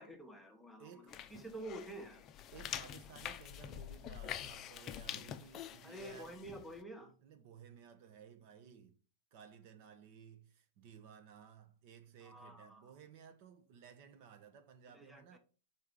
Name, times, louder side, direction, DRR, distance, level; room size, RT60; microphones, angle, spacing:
voice 1, 0.0-2.2 5.8-7.1 12.2-12.8 14.9-15.4, right 1 dB, ahead, 1.0 m, -49 dB
voice 2, 0.8-1.2 2.5-6.4 7.0-9.0 9.3-15.4, right 7 dB, 50° right, 0.9 m, -57 dB
sound 1, 1.1-6.8, left 10 dB, 30° left, 0.5 m, -46 dB
4.6 x 4.4 x 5.3 m
hypercardioid pair, 135°, 0 cm